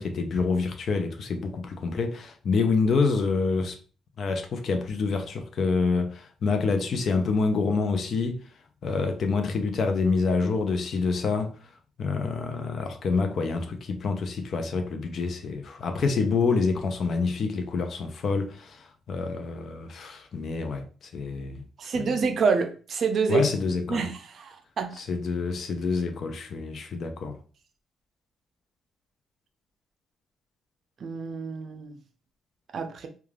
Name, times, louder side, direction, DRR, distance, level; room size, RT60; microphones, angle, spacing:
voice 1, 0.0-3.8 4.2-8.4 8.8-11.5 12.0-20.8 21.1-21.6 21.9-22.2 23.3-24.1 25.0-27.4, left 4 dB, 55° left, 0.5 m, -27 dB
voice 2, 21.8-23.5 23.9-24.1 24.4-24.9 31.0-32.0 32.7-33.1, right 5 dB, 55° right, 0.5 m, -27 dB
3.2 x 2.3 x 2.4 m
cardioid pair, 90°, 0 cm